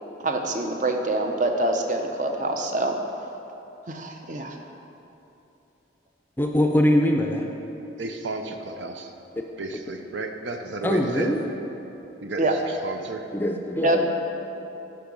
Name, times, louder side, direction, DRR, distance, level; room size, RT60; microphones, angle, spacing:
voice 1, 0.2-2.9 3.9-4.6 12.4-12.5 13.8-14.1, right 2 dB, 40° right, 4 dB, 0.7 m, -25 dB
voice 2, 6.4-7.5 9.3-9.4 10.8-11.4 13.3-14.1, left 1 dB, 10° left, 2 dB, 0.5 m, -22 dB
voice 3, 7.9-9.1 9.6-11.3 12.2-13.3, right 3 dB, 75° right, 5 dB, 0.6 m, -33 dB
10.5 x 4.7 x 5.3 m, 3.0 s
head